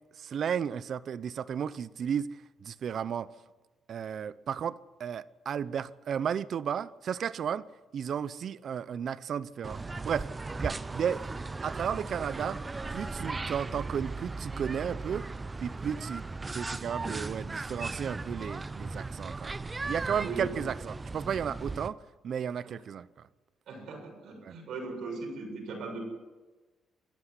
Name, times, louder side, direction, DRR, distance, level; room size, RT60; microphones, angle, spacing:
voice 1, 0.2-2.3 2.6-3.3 3.9-7.6 7.9-10.3 10.6-11.2 11.6-12.6 12.9-15.3 15.6-16.2 16.5-19.6 19.9-22.0 22.2-23.1 24.4-24.5, right 8 dB, 55° right, 0.7 m, -33 dB
sound 1, 9.6-21.9, right 3 dB, 20° right, 0.6 m, -37 dB
voice 2, 20.2-20.6 22.6-22.7 23.7-26.0, right 3 dB, 70° right, 7.4 m, -39 dB
24.5 x 13.5 x 8.2 m
cardioid pair, 125°, 0 cm